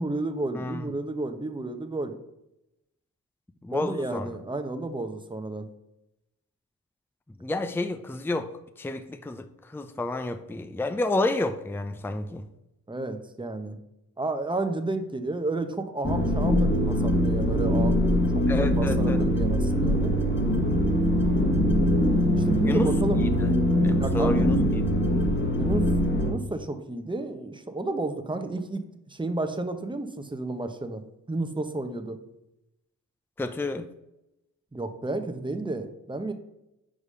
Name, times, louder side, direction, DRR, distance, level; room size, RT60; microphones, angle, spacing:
voice 1, 0.0-2.2 3.7-5.7 12.9-13.8 14.2-20.1 22.4-23.2 23.9-24.7 25.4-25.9 26.2-31.0 31.3-32.2 34.7-36.3, right 2 dB, 15° right, 7 dB, 0.9 m, -31 dB
voice 2, 0.5-0.9 3.6-4.3 7.4-8.5 8.8-12.4 18.5-19.2 22.6-22.9 23.8-24.8 33.4-33.9, left 2 dB, 5° left, 9 dB, 0.6 m, -30 dB
sound 1, 16.0-26.3, equal, 30° left, 1.6 m, -23 dB
5.0 x 4.8 x 5.5 m, 0.88 s
supercardioid pair, 45°, 36 cm